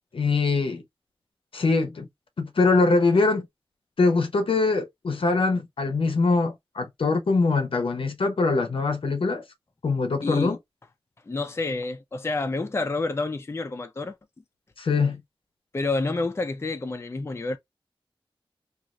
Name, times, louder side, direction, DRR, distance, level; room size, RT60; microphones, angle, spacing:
voice 1, 0.1-0.8 1.5-2.1 2.4-3.5 4.0-9.4 9.8-10.6 14.8-15.2, left 3 dB, 80° left, 0.6 m, -23 dB
voice 2, 10.2-10.5 11.3-14.1 15.7-17.6, left 3 dB, 30° left, 0.4 m, -28 dB
2.4 x 2.4 x 3.0 m
wide cardioid pair, 70°, 9 cm